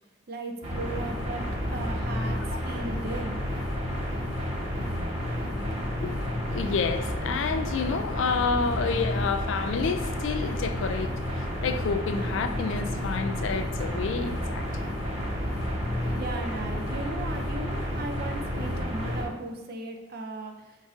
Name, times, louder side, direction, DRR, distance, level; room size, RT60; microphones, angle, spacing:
voice 1, 0.3-1.4 1.7-3.4 16.2-20.7, right 2 dB, 50° right, 4 dB, 0.5 m, -36 dB
sound 1, 0.6-19.2, equal, 30° right, 1.1 m, -31 dB
voice 2, 6.5-14.7, left 5 dB, 65° left, 8 dB, 0.3 m, -29 dB
5.3 x 2.6 x 3.6 m, 1.1 s
head